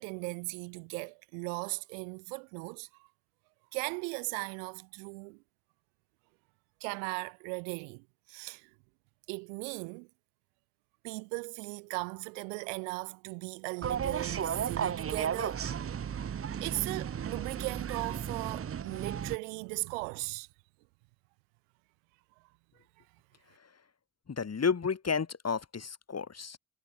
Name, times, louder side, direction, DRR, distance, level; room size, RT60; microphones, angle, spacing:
voice 1, 0.0-3.1 3.7-5.4 6.8-8.7 9.3-10.1 11.0-15.6 16.6-20.5, right 39 dB, 85° right, 1.2 m, -38 dB
sound 1, 13.8-19.4, right 8 dB, 35° right, 0.8 m, -34 dB
voice 2, 24.3-26.6, left 5 dB, 40° left, 4.2 m, -31 dB
hypercardioid pair, 50°, 39 cm